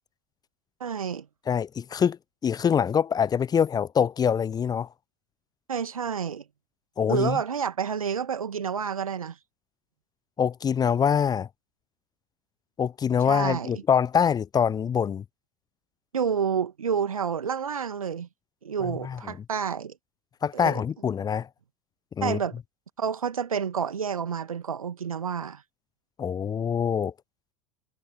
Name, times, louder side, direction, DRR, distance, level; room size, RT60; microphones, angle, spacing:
voice 1, 0.8-1.3 5.7-6.4 7.1-9.4 13.2-13.8 16.1-18.3 18.6-19.9 20.5-20.8 22.2-22.6 23.0-25.6, right 7 dB, 75° right, 1.8 m, -29 dB
voice 2, 1.5-4.9 7.0-7.4 10.4-11.5 12.8-15.2 18.8-19.2 20.4-21.5 22.2-22.4 26.2-27.1, left 7 dB, 20° left, 0.7 m, -24 dB
figure-of-eight pair, 80°, 18 cm